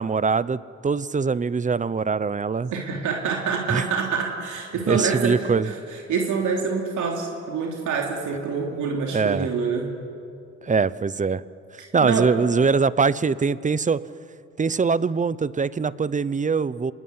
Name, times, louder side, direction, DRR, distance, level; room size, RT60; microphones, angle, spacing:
voice 1, 0.0-2.7 3.7-3.8 4.9-5.7 9.1-9.5 10.6-11.4 11.9-14.0 14.6-16.9, right 5 dB, 25° right, 17 dB, 0.8 m, -22 dB
voice 2, 2.7-9.9 12.0-12.3, right 5 dB, 80° right, 1 dB, 3.1 m, -26 dB
26.5 x 20.5 x 9.6 m, 2.5 s
cardioid pair, 90°, 30 cm